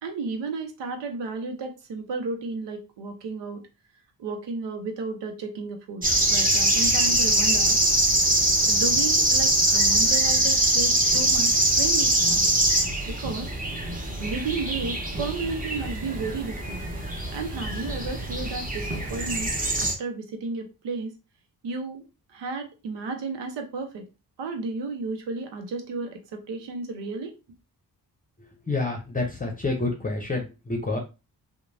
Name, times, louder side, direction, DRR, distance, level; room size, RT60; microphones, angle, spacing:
voice 1, 0.0-3.6 4.2-7.8 8.6-11.5 11.8-12.5 13.1-13.5 14.2-16.9 17.3-19.5 19.8-21.1 21.6-22.0 22.3-24.1 24.4-27.3, right 3 dB, 80° right, 6 dB, 0.8 m, -33 dB
sound 1, 6.0-19.9, right 1 dB, 20° right, 1.0 m, -23 dB
voice 2, 28.4-31.0, left 3 dB, 20° left, 2 dB, 0.7 m, -28 dB
2.9 x 2.2 x 2.6 m, 0.29 s
supercardioid pair, 50°, 42 cm